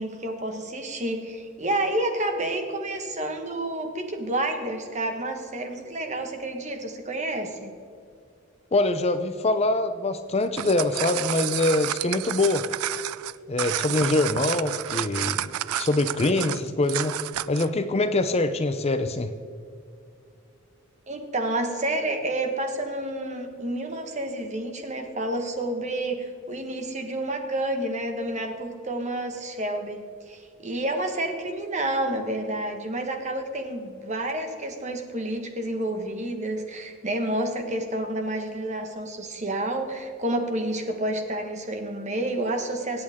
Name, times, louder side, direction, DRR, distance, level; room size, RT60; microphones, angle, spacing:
voice 1, 0.0-7.7 21.1-30.0 30.3-43.0, right 1 dB, 35° right, 4 dB, 1.4 m, -29 dB
voice 2, 8.7-12.7 13.5-17.2 17.5-19.3, left 2 dB, 30° left, 9 dB, 0.5 m, -24 dB
sound 1, 10.4-17.7, right 13 dB, 85° right, 0.4 m, -30 dB
25.0 x 8.6 x 3.7 m, 2.4 s
head